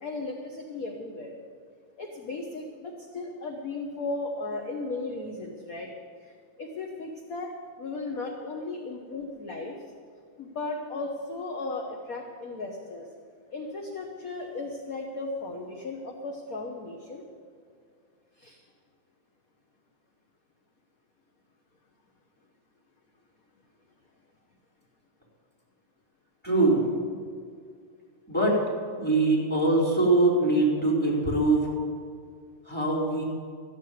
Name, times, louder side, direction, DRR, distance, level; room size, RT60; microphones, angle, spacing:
voice 1, 0.0-1.3 2.0-5.9 6.6-7.5 7.8-9.7 10.4-13.1 13.5-17.2 18.4-18.6, left 3 dB, 50° left, 1 dB, 1.3 m, -35 dB
voice 2, 26.4-26.9 28.3-28.6 29.0-31.7 32.7-33.2, right 2 dB, 5° left, -6 dB, 4.4 m, -23 dB
14.5 x 7.6 x 9.3 m, 2.1 s
omnidirectional pair, 2.3 m